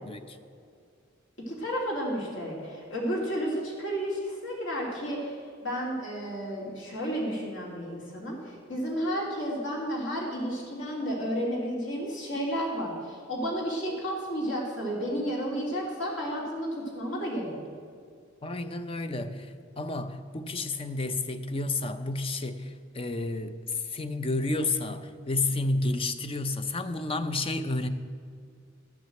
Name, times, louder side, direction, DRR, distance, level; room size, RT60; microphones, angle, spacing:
voice 1, 0.0-0.4 18.4-27.9, left 2 dB, 25° left, 10 dB, 0.5 m, -31 dB
voice 2, 1.5-5.4 5.6-17.8, equal, 65° left, -2 dB, 3.0 m, -32 dB
12.5 x 6.1 x 7.7 m, 2.2 s
head